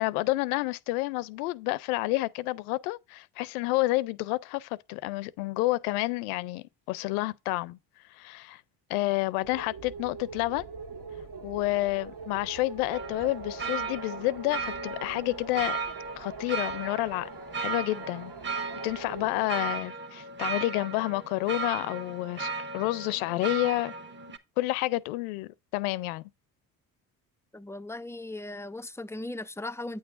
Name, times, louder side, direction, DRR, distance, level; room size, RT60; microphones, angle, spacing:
voice 1, 0.0-7.8 8.1-8.6 8.9-10.7 11.4-15.8 16.2-17.3 17.6-23.9 24.6-26.2, left 19 dB, 85° left, 0.6 m, -29 dB
sound 1, 9.4-19.5, right 5 dB, 65° right, 2.0 m, -43 dB
sound 2, 12.9-24.4, right 4 dB, 25° right, 1.2 m, -36 dB
voice 2, 27.5-30.0, left 2 dB, 5° left, 0.3 m, -38 dB
8.8 x 6.3 x 2.5 m
supercardioid pair, 70°, 43 cm